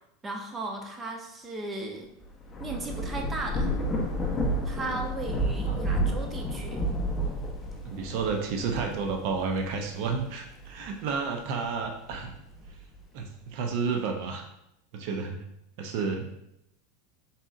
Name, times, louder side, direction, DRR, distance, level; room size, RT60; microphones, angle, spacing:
voice 1, 0.2-2.1 2.6-3.7 4.6-6.8, right 2 dB, 20° right, 3 dB, 0.6 m, -36 dB
Thunder / Rain, 2.2-11.1 11.7-13.0, right 1 dB, 15° left, 0.7 m, -31 dB
voice 2, 7.9-12.3 13.1-14.4 14.9-15.4 15.8-16.3, right 5 dB, 60° right, 3 dB, 0.5 m, -31 dB
4.0 x 3.7 x 2.4 m, 0.80 s
supercardioid pair, 125°, 0 cm